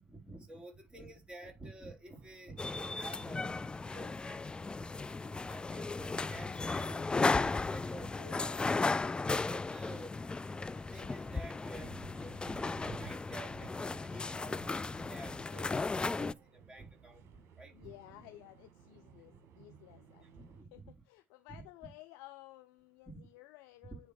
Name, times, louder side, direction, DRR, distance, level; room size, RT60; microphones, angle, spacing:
voice 1, 0.0-5.1 5.5-9.0 9.5-10.2 10.6-18.1 20.2-21.0 21.5-21.6, right 2 dB, 20° right, 4.1 m, -50 dB
sound 1, 2.0-20.6, right 7 dB, 55° right, 1.5 m, -64 dB
sound 2, 2.6-16.3, left 3 dB, 15° left, 0.4 m, -35 dB
voice 2, 17.7-20.3 20.7-24.1, left 17 dB, 70° left, 0.6 m, -55 dB
10.0 x 3.4 x 4.8 m
figure-of-eight pair, 55°, 5 cm